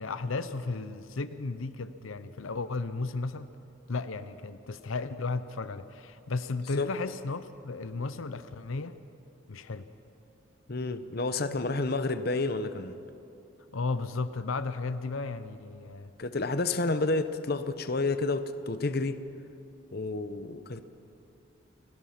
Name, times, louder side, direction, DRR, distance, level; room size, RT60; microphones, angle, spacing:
voice 1, 0.0-3.5 3.9-9.0 9.5-9.8 13.7-16.1, left 3 dB, 80° left, 12 dB, 0.7 m, -34 dB
voice 2, 10.7-13.0 16.2-19.2 19.9-20.8, left 3 dB, 50° left, 10 dB, 0.8 m, -30 dB
28.5 x 17.0 x 5.8 m, 2.7 s
head